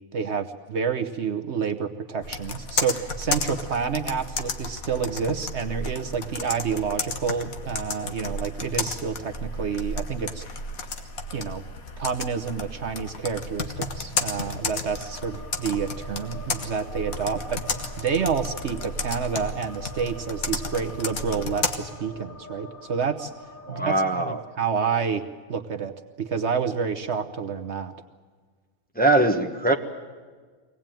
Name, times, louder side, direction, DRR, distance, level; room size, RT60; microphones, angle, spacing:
voice 1, 0.1-10.4 11.3-11.6 12.0-23.3 23.7-25.2 25.5-27.9, right 6 dB, 55° right, 7 dB, 1.1 m, -29 dB
Computer keyboard, 2.2-21.8, left 3 dB, 80° left, 1.8 m, -33 dB
sound 1, 14.9-23.8, left 2 dB, 25° left, 3.6 m, -45 dB
voice 2, 23.7-24.4 28.9-29.7, right 2 dB, 5° left, 2 dB, 1.2 m, -21 dB
24.0 x 18.0 x 9.0 m, 1.5 s
omnidirectional pair, 1.5 m